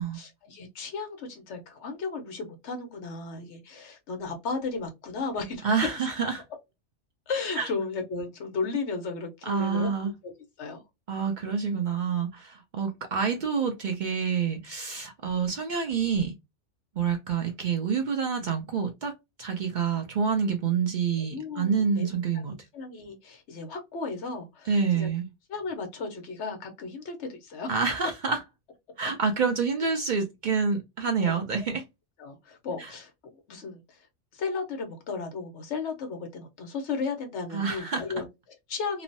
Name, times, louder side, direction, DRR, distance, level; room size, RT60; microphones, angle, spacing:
voice 1, 0.1-5.7 6.0-6.1 7.3-10.3 10.6-10.8 21.2-22.1 22.7-25.1 25.5-27.7 32.2-34.0 34.3-39.0, left 4 dB, 70° left, 1.1 m, -35 dB
voice 2, 5.6-6.4 7.6-7.7 9.5-10.1 11.1-16.3 17.0-19.1 19.4-22.5 24.7-25.3 27.7-28.4 29.0-31.8 37.5-38.0, right 6 dB, 60° right, 0.5 m, -27 dB
3.0 x 2.0 x 2.5 m
omnidirectional pair, 1.2 m